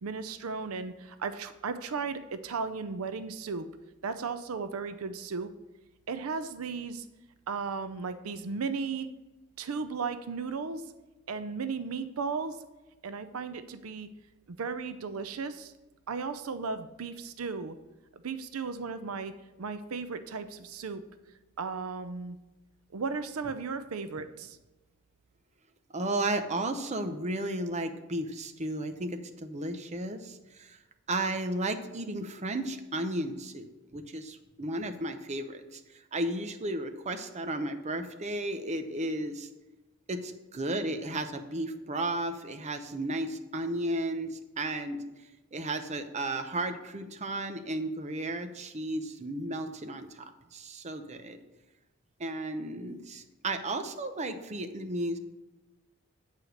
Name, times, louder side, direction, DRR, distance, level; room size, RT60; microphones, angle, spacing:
voice 1, 0.0-3.7 4.0-5.5 6.1-7.1 7.5-9.1 9.6-10.8 11.3-12.6 13.0-14.1 14.5-15.7 16.1-17.7 18.2-19.3 19.6-21.0 21.6-22.4 22.9-24.6, right 5 dB, 85° right, 11 dB, 0.6 m, -35 dB
voice 2, 25.9-30.8 31.1-35.8 36.1-39.5 40.1-45.0 45.5-51.4 52.2-55.2, right 1 dB, 35° right, 7 dB, 0.7 m, -34 dB
8.5 x 4.9 x 6.4 m, 1.1 s
head